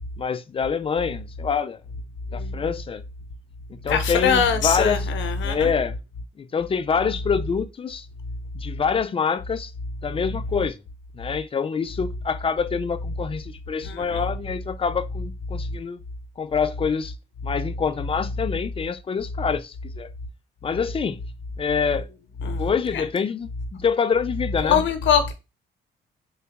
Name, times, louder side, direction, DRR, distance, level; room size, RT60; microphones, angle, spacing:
voice 1, 0.2-1.8 2.3-3.0 3.7-5.1 5.4-6.0 6.4-8.1 8.5-9.7 10.0-10.8 11.2-16.0 16.4-17.1 17.4-20.1 20.6-21.2 21.6-22.1 22.6-24.8, left 6 dB, 30° left, 0.4 m, -26 dB
voice 2, 3.8-5.7 13.8-14.2 22.4-23.0 24.6-25.3, left 6 dB, 70° left, 0.8 m, -22 dB
3.8 x 2.2 x 3.4 m
cardioid pair, 90°, 20 cm